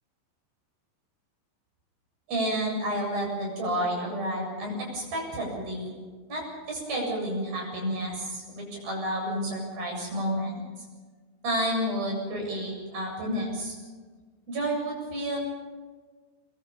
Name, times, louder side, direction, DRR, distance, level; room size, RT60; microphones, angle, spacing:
voice 1, 2.3-5.9 6.3-10.6 11.4-13.7 14.5-15.4, right 1 dB, 50° right, -1 dB, 9.4 m, -30 dB
26.5 x 23.5 x 5.5 m, 1.4 s
omnidirectional pair, 5.4 m